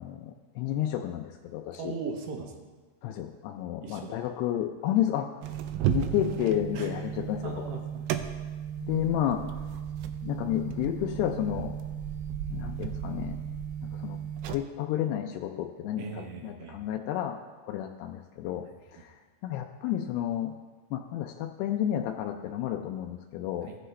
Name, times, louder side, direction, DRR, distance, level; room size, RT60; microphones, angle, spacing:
voice 1, 0.0-1.8 3.0-5.4 5.9-7.6 8.8-9.4 10.2-11.7 12.5-13.4 13.9-14.2 14.5-18.6 18.9-19.1 19.4-20.5 20.9-23.7, left 11 dB, 85° left, 3 dB, 2.5 m, -31 dB
voice 2, 1.8-2.5 3.8-4.3 6.7-8.2 16.0-16.8 18.9-19.1 23.6-23.8, right 5 dB, 70° right, 2 dB, 2.2 m, -40 dB
sound 1, 5.4-14.6, right 10 dB, 85° right, 2.6 m, -34 dB
15.5 x 7.8 x 3.2 m, 1.3 s
omnidirectional pair, 4.8 m